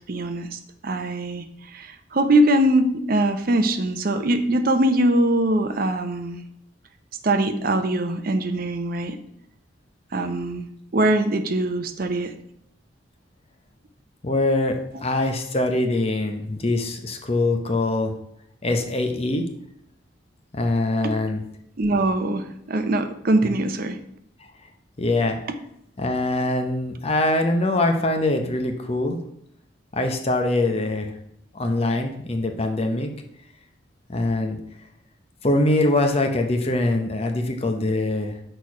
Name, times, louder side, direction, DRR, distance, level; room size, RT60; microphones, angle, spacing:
voice 1, 0.1-6.4 7.2-9.2 10.1-10.7 10.9-12.3 21.0-21.1 21.8-24.0, right 1 dB, 50° right, 7 dB, 0.6 m, -22 dB
voice 2, 14.2-18.1 18.6-19.5 20.5-21.4 25.0-25.4 26.0-29.2 29.9-31.1 31.5-33.1 34.1-34.6 35.4-38.4, left 2 dB, 30° left, 4 dB, 0.7 m, -23 dB
6.3 x 4.4 x 4.7 m, 0.74 s
head